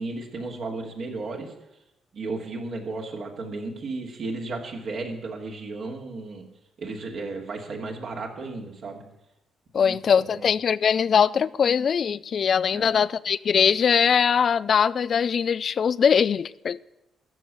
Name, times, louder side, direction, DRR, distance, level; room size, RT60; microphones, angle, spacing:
voice 1, 0.0-1.5 2.1-6.4 6.8-9.0 9.8-10.5 12.7-13.0, right 3 dB, 65° right, 2.7 m, -34 dB
voice 2, 9.7-16.8, left 7 dB, 55° left, 0.4 m, -21 dB
13.5 x 6.2 x 9.0 m
hypercardioid pair, 50°, 0 cm